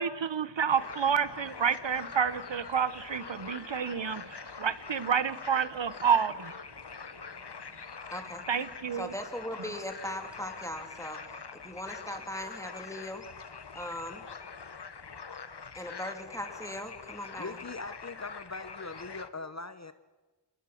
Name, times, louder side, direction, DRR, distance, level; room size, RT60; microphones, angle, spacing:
voice 1, 0.0-6.5 8.5-9.1, right 7 dB, 90° right, 16 dB, 0.8 m, -29 dB
sound 1, 0.7-19.3, left 5 dB, 65° left, 1.1 m, -44 dB
voice 2, 8.1-8.4 8.9-11.2 11.5-13.2 13.7-14.3 15.7-17.6, left 1 dB, 5° left, 5 dB, 2.9 m, -39 dB
voice 3, 17.4-19.9, left 3 dB, 40° left, 12 dB, 0.8 m, -41 dB
27.5 x 19.0 x 6.4 m, 1.3 s
wide cardioid pair, 45°, 43 cm